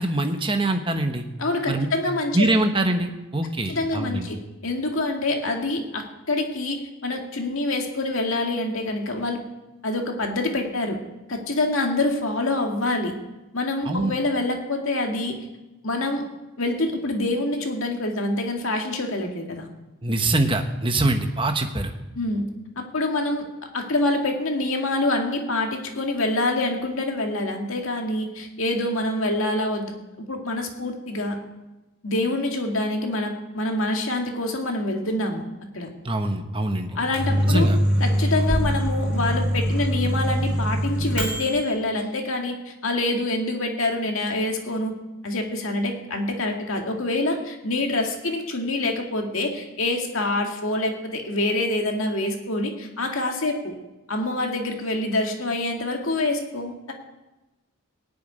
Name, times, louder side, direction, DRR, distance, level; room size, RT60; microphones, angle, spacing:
voice 1, 0.0-1.2 1.7-1.9 2.3-4.3 13.8-14.1 20.0-21.9 36.0-37.0 37.4-37.8, right 2 dB, 25° right, 6 dB, 1.1 m, -24 dB
voice 2, 1.4-2.6 3.7-9.4 9.8-11.0 11.3-13.1 13.5-15.4 15.8-16.2 16.6-19.7 22.2-22.5 22.8-23.4 23.7-29.9 30.2-31.4 32.0-35.5 35.7-35.9 37.0-37.7 38.0-44.9 45.2-53.7 54.1-56.9, left 2 dB, 65° left, 2 dB, 2.2 m, -26 dB
Microwave oven, 36.9-41.7, equal, 5° right, 3.5 m, -23 dB
18.0 x 6.9 x 9.4 m, 1.0 s
head